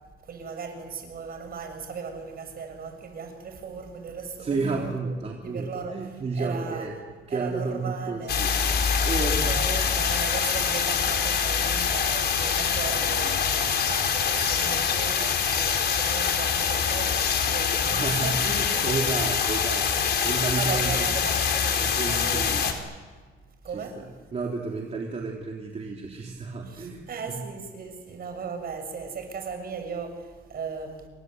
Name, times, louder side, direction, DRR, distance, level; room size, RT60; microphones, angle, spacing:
voice 1, 0.2-5.1 5.4-6.9 7.3-8.4 9.4-18.9 19.9-20.3 20.6-22.9 23.6-24.2 26.6-31.1, right 5 dB, 45° right, 6 dB, 6.7 m, -37 dB
voice 2, 4.4-6.9 7.3-8.6 9.0-9.5 17.8-21.2 21.8-22.7 23.7-23.8 24.3-27.4, right 4 dB, 30° right, 0 dB, 3.5 m, -31 dB
sound 1, 8.3-22.7, left 7 dB, 50° left, 4.3 m, -25 dB
29.0 x 24.5 x 8.1 m, 1.5 s
cardioid pair, 130°, 21 cm